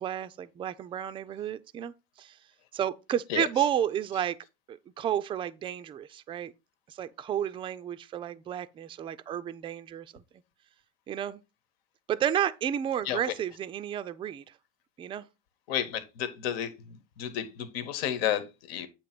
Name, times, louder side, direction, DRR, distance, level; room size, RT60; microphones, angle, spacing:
voice 1, 0.0-2.4 2.7-4.4 4.7-6.5 6.9-10.2 11.1-11.4 12.1-14.4 15.0-15.3, right 10 dB, 20° right, 0.3 m, -32 dB
voice 2, 15.7-16.7 17.2-18.9, left 10 dB, 85° left, 1.3 m, -31 dB
8.6 x 3.1 x 5.9 m
supercardioid pair, 140°, 30 cm